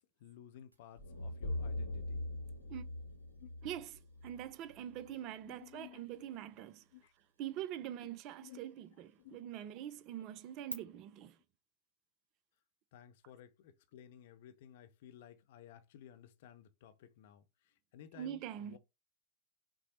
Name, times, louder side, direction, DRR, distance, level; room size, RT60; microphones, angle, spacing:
voice 1, 0.2-2.2 3.4-3.5 5.5-6.0 6.9-7.1 8.4-8.8 9.2-9.5 12.9-17.4 17.9-18.8, left 10 dB, 55° left, 0.5 m, -56 dB
sound 1, 0.7-10.7, right 1 dB, 80° right, 0.7 m, -58 dB
sound 2, 1.0-5.1, left 2 dB, 75° left, 0.9 m, -42 dB
voice 2, 3.6-6.8 7.4-11.4 18.1-18.8, right 11 dB, 40° right, 0.3 m, -44 dB
5.8 x 2.0 x 2.8 m
figure-of-eight pair, 90°, 0 cm